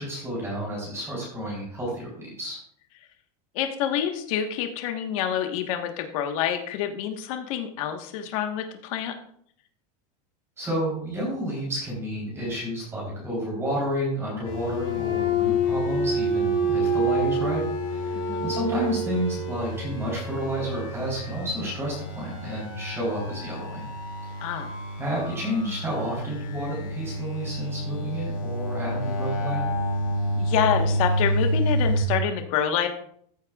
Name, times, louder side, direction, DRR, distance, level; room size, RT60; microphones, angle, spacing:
voice 1, 0.0-2.6 10.6-23.9 24.2-24.3 25.0-29.6, equal, 10° right, -5 dB, 3.7 m, -30 dB
voice 2, 3.5-9.1 18.1-18.5 24.4-24.7 30.4-32.9, left 9 dB, 55° left, 5 dB, 1.4 m, -27 dB
sound 1, 14.5-32.0, equal, 35° left, 3.5 m, -28 dB
14.5 x 7.6 x 2.4 m, 0.63 s
supercardioid pair, 160°, 21 cm